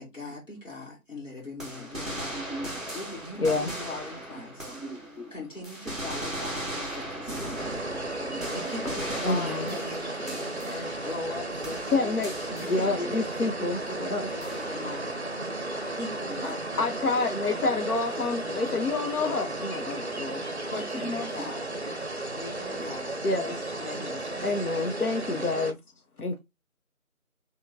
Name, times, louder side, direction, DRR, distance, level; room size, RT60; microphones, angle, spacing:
voice 1, 0.0-2.5 2.9-4.7 5.3-7.8 8.5-12.2 12.6-15.2 16.0-17.0 20.6-21.7 22.3-23.3 23.8-24.5 25.4-25.6, left 2 dB, 60° left, 1.9 m, -40 dB
sound 1, 1.6-21.6, right 2 dB, 20° left, 2.2 m, -54 dB
sound 2, 1.6-5.3 5.6-11.4 11.6-13.3 14.4-15.1, right 1 dB, ahead, 0.8 m, -38 dB
voice 2, 2.3-2.8 4.3-5.3 8.2-8.4 8.8-8.9 10.2-10.3 10.6-10.7 13.0-13.1 15.6-15.8 19.9-20.0 21.0-21.1 21.4-21.5 22.8-22.9 25.3-25.4, right 2 dB, 45° left, 2.2 m, -41 dB
voice 3, 3.4-3.7 9.2-9.7 11.9-13.8 14.1-14.3 16.8-20.4 23.2-23.6 24.4-25.8 26.2-26.4, left 3 dB, 80° left, 0.8 m, -28 dB
sound 3, 7.6-25.7, right 2 dB, 50° right, 0.5 m, -34 dB
4.7 x 2.9 x 2.6 m
figure-of-eight pair, 175°, 43 cm